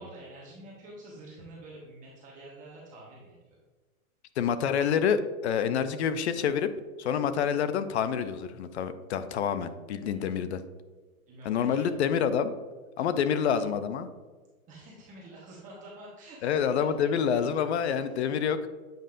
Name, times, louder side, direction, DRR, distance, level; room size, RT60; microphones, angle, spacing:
voice 1, 0.0-3.5 10.1-10.5 11.3-11.9 13.0-13.7 14.7-16.9 17.2-18.3, right 1 dB, 20° right, -5 dB, 1.1 m, -48 dB
voice 2, 4.4-6.7 7.0-10.6 11.4-12.5 13.0-14.1 16.4-18.6, left 7 dB, 55° left, 12 dB, 0.5 m, -27 dB
7.8 x 5.1 x 2.5 m, 1.3 s
hypercardioid pair, 160°, 42 cm